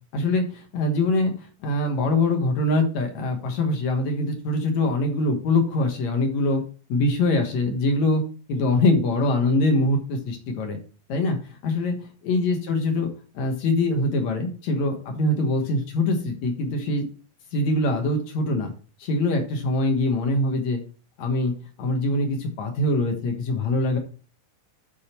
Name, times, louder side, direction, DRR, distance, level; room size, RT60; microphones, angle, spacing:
voice 1, 0.1-1.3 1.6-6.6 6.9-8.2 8.5-10.8 11.1-11.4 11.6-13.1 13.3-17.0 17.5-18.7 19.0-20.8 21.2-21.5 21.8-24.0, left 2 dB, 60° left, 4 dB, 2.2 m, -23 dB
11.5 x 4.0 x 4.4 m, 0.37 s
omnidirectional pair, 4.3 m